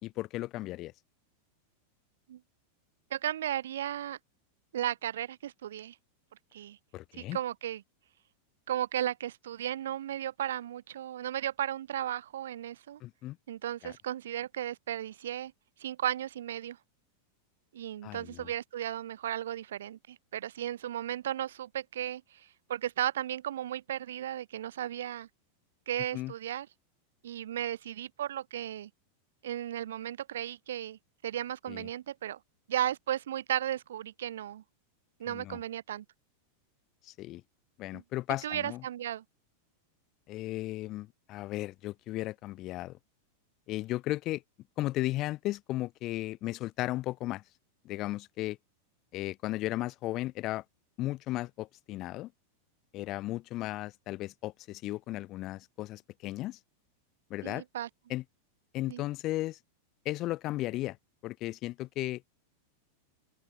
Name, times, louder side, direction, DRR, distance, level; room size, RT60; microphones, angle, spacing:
voice 1, 0.0-0.9 6.9-7.4 13.0-13.4 13.8-13.9 18.0-18.5 26.1-26.3 31.7-31.9 35.3-35.6 37.0-37.4 37.8-38.8 40.3-43.0 43.7-44.4 44.8-47.4 47.8-48.6 49.1-50.6 51.0-52.3 52.9-56.6 57.3-57.6 58.1-58.2 58.7-59.6 60.0-61.0 61.2-62.2, left 17 dB, 35° left, 4.4 m, -35 dB
voice 2, 3.1-4.2 4.7-5.9 6.5-6.8 7.2-7.8 8.7-13.0 13.5-15.5 15.8-16.8 17.7-25.3 25.9-26.7 27.2-28.9 29.4-32.4 32.7-34.6 35.2-36.0 37.9-38.0 38.4-39.2 57.4-57.9 58.9-59.0, right 11 dB, 60° right, 6.6 m, -35 dB
open air
figure-of-eight pair, 90°, 0 cm